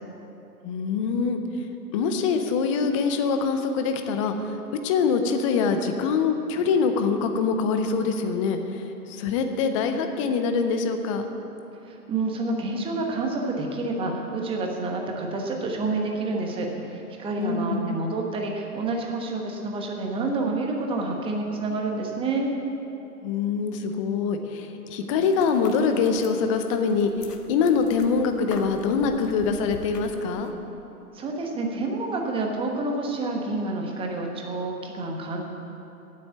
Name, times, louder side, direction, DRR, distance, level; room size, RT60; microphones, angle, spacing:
voice 1, 0.6-4.6 4.8-11.2 17.4-17.9 23.2-30.5, left 5 dB, 20° left, 6 dB, 0.6 m, -24 dB
voice 2, 11.8-22.5 31.1-35.4, right 3 dB, 10° right, 1 dB, 1.1 m, -28 dB
sound 1, 25.2-30.5, left 3 dB, 90° left, 1.2 m, -44 dB
8.9 x 8.2 x 9.1 m, 2.9 s
figure-of-eight pair, 125°, 47 cm